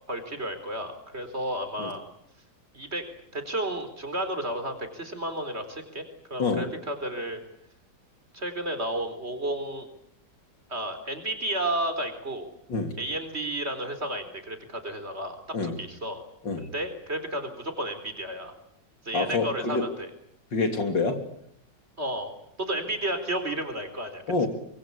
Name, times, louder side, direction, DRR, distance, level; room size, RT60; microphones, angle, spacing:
voice 1, 0.1-2.0 2.7-3.0 3.3-6.0 6.3-7.4 8.3-9.9 10.7-12.5 13.0-16.3 16.6-18.5 19.0-19.9 22.0-22.3 22.6-24.2, right 1 dB, 35° right, 8 dB, 4.3 m, -32 dB
voice 2, 19.1-19.9 20.5-21.2 24.3-24.5, left 3 dB, 85° left, 6 dB, 3.8 m, -26 dB
25.0 x 23.5 x 8.4 m, 0.73 s
omnidirectional pair, 1.9 m